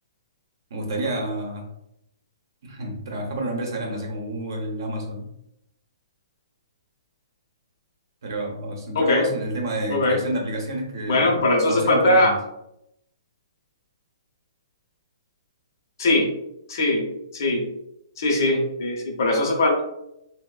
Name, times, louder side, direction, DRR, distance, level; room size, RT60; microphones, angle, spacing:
voice 1, 0.7-1.7 2.6-5.3 8.2-12.4, right 1 dB, 55° right, 1 dB, 0.7 m, -30 dB
voice 2, 8.9-9.3 9.9-10.2 11.1-12.3 16.0-16.3 16.7-17.1 17.3-17.6 18.2-19.8, left 2 dB, 50° left, 0 dB, 0.7 m, -20 dB
3.0 x 2.0 x 2.3 m, 0.80 s
hypercardioid pair, 170°, 2 cm